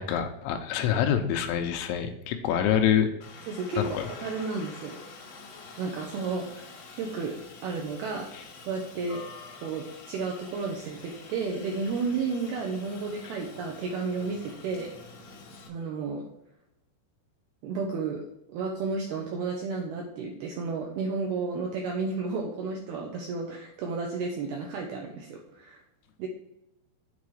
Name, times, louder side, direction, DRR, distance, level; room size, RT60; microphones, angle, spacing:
voice 1, 0.0-3.1 3.8-4.0, left 9 dB, 80° left, 6 dB, 2.9 m, -26 dB
Aircraft, 3.2-15.7, left 4 dB, 60° left, 1.8 m, -47 dB
voice 2, 3.5-4.0 4.2-5.0 5.8-7.3 7.6-8.3 8.7-9.2 9.6-14.9 15.7-16.2 17.6-18.2 18.5-25.8 26.2-26.3, right 4 dB, 80° right, 0 dB, 2.3 m, -32 dB
8.3 x 4.3 x 4.8 m, 0.83 s
omnidirectional pair, 5.5 m